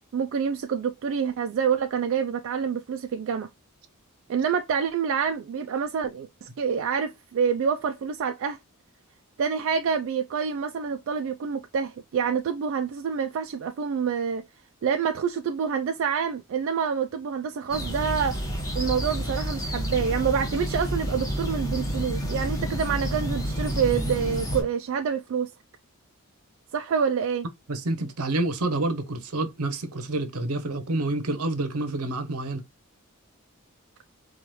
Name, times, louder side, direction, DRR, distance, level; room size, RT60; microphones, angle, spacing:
voice 1, 0.1-3.5 4.3-8.6 9.4-14.4 14.8-18.4 18.7-25.5 26.7-27.5, right 6 dB, 60° right, 0.3 m, -27 dB
sound 1, 17.7-24.6, equal, 15° left, 1.0 m, -29 dB
voice 2, 27.7-32.6, right 2 dB, 80° right, 0.7 m, -28 dB
4.5 x 2.3 x 3.0 m
head